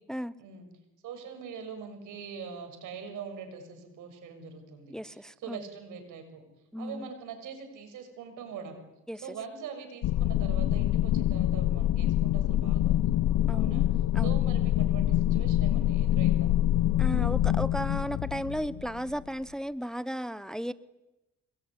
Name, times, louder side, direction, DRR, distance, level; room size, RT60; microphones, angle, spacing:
voice 1, 0.4-0.7 1.0-6.4 6.8-8.8 9.2-13.0 13.5-16.6, right 6 dB, 85° right, 6 dB, 6.9 m, -43 dB
voice 2, 4.9-5.6 6.7-7.1 9.1-9.2 13.5-13.8 14.1-14.3 17.0-20.7, equal, ahead, 16 dB, 0.9 m, -34 dB
sound 1, 10.0-19.3, left 13 dB, 80° left, 0.9 m, -26 dB
26.5 x 21.5 x 10.0 m, 0.99 s
cardioid pair, 90°, 30 cm